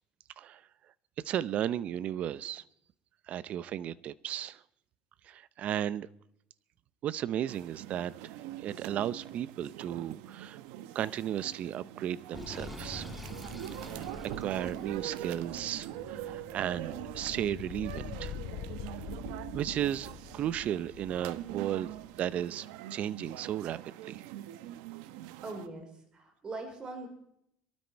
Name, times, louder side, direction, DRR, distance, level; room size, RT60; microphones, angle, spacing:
voice 1, 1.2-2.6 3.3-4.6 5.2-6.1 7.0-10.6 10.9-13.2 13.8-14.1 14.4-18.4 19.5-21.9 22.2-24.2, right 11 dB, 50° right, 18 dB, 0.7 m, -35 dB
sound 1, 7.5-25.7, right 13 dB, 85° right, 0.9 m, -43 dB
sound 2, 12.3-22.4, left 11 dB, 60° left, 0.8 m, -46 dB
Sink (filling or washing), 12.3-15.1, equal, 5° right, 1.4 m, -46 dB
voice 2, 25.4-27.1, right 2 dB, 30° right, 5 dB, 4.1 m, -41 dB
23.5 x 12.5 x 4.6 m, 0.73 s
supercardioid pair, 110°, 3 cm